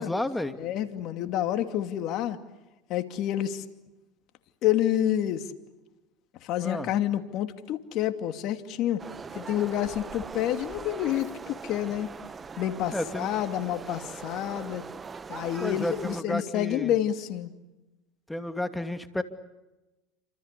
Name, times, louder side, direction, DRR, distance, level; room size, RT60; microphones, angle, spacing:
voice 1, 0.0-0.6 6.6-6.9 12.9-13.3 15.6-16.9 18.3-19.2, left 1 dB, 5° left, 8 dB, 2.5 m, -31 dB
voice 2, 0.6-2.4 2.9-3.6 4.6-5.4 6.4-9.0 9.3-12.1 12.6-14.8 15.3-17.5, left 11 dB, 55° left, 8 dB, 2.6 m, -28 dB
sound 1, 9.0-16.2, right 5 dB, 25° right, 1.1 m, -41 dB
29.5 x 26.5 x 6.8 m, 1.0 s
supercardioid pair, 105°, 0 cm